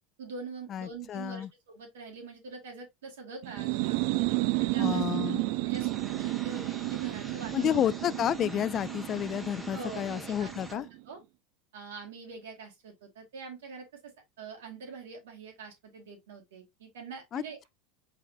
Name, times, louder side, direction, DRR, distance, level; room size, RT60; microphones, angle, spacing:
voice 1, 0.2-4.0 4.6-5.0 5.4-5.9 6.2-7.8 9.7-11.2 11.7-13.8 14.4-17.7, right 4 dB, 80° right, 2.5 m, -44 dB
voice 2, 0.7-1.5 4.8-5.4 7.5-10.9 17.3-17.4, left 10 dB, 40° left, 0.3 m, -30 dB
sound 1, 3.4-11.0, right 20 dB, 65° right, 0.4 m, -32 dB
sound 2, 5.7-10.7, right 1 dB, 10° right, 1.3 m, -45 dB
5.0 x 4.2 x 2.5 m
hypercardioid pair, 90°, 0 cm